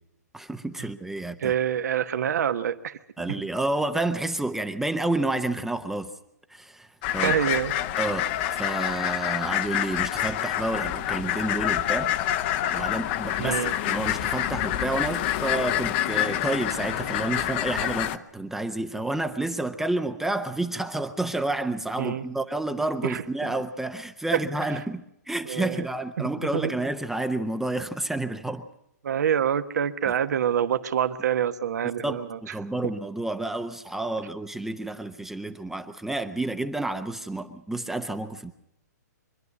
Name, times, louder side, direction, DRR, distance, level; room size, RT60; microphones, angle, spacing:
voice 1, 0.3-1.5 3.2-6.1 6.5-6.9 7.1-7.4 8.0-8.3 8.5-12.1 12.7-28.7 30.1-30.2 32.0-38.5, right 2 dB, 5° right, 8 dB, 0.7 m, -30 dB
voice 2, 1.4-3.0 7.2-7.7 13.4-13.7 22.0-22.2 23.0-23.2 24.3-24.4 25.5-25.9 26.2-26.3 26.5-26.7 29.0-32.4, right 9 dB, 70° right, 11 dB, 1.2 m, -26 dB
sound 1, 7.0-18.2, left 12 dB, 35° left, 0.8 m, -27 dB
25.0 x 11.0 x 9.5 m, 0.79 s
hypercardioid pair, 140°, 9 cm